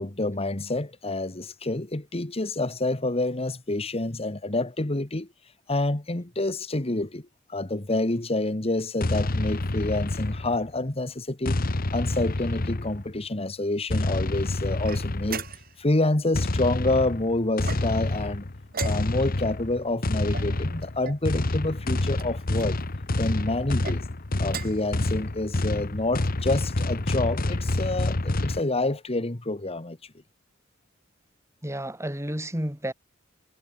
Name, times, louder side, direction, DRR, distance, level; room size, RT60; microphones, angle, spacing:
voice 1, 0.0-5.3 5.7-11.6 11.9-15.4 15.8-18.4 18.8-22.8 23.2-24.0 24.4-30.1, left 2 dB, 30° left, 1.5 m, -28 dB
sound 1, 9.0-10.8 11.4-13.2 13.9-15.5 16.3-28.6, left 2 dB, 50° left, 1.1 m, -28 dB
sound 2, 14.8-15.9 17.6-18.2 18.7-19.4 20.3-21.3 22.1-22.7 23.7-24.0 24.4-24.9, right 6 dB, 50° right, 4.0 m, -38 dB
voice 2, 31.6-32.9, right 1 dB, 15° right, 5.5 m, -31 dB
head